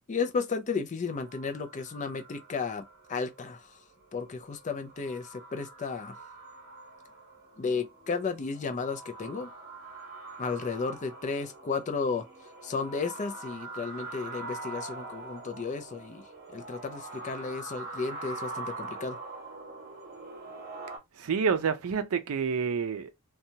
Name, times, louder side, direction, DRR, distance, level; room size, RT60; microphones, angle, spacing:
voice 1, 0.1-3.6 4.1-6.1 7.6-9.5 10.4-12.2 12.6-16.2 16.5-19.2, left 4 dB, 35° left, 0.4 m, -33 dB
sound 1, 1.1-21.0, right 2 dB, 45° right, 1.0 m, -44 dB
voice 2, 21.1-23.1, right 6 dB, 70° right, 0.4 m, -28 dB
2.8 x 2.2 x 2.7 m
head